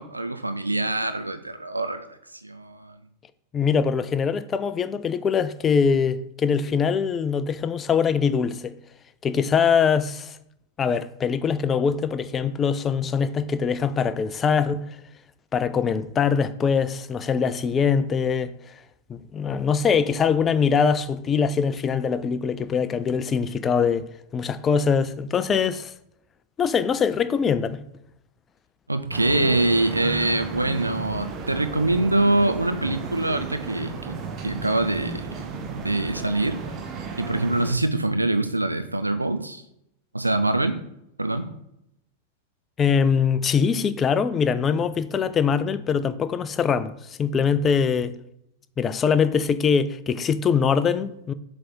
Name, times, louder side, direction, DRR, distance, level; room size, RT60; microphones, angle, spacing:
voice 1, 0.0-3.0 28.9-34.2 34.4-35.3 35.7-36.6 37.2-39.6 40.1-40.8 41.2-41.5, right 2 dB, 85° right, 0.6 m, -24 dB
voice 2, 3.5-8.7 9.2-10.4 10.8-14.8 15.5-18.5 19.1-24.1 24.3-25.9 26.6-27.8 42.8-48.1 48.8-51.3, left 6 dB, 25° left, 0.4 m, -23 dB
sound 1, 29.1-37.7, right 4 dB, 35° right, 0.9 m, -34 dB
7.6 x 3.4 x 4.3 m
figure-of-eight pair, 90°, 0 cm